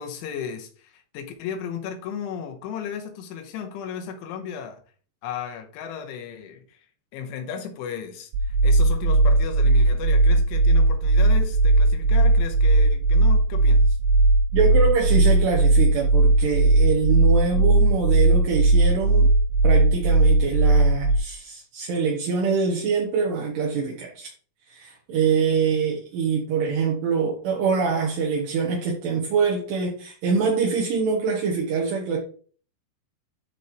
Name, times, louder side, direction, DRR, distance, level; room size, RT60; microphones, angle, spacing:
voice 1, 0.0-4.8 5.2-6.9 7.1-14.0, left 8 dB, 85° left, 3.5 m, -35 dB
sound 1, 8.3-21.2, right 2 dB, 90° right, 2.3 m, -18 dB
voice 2, 14.5-19.3 19.6-24.3 24.7-32.2, right 5 dB, 70° right, 3.1 m, -24 dB
12.5 x 4.3 x 3.1 m
omnidirectional pair, 5.4 m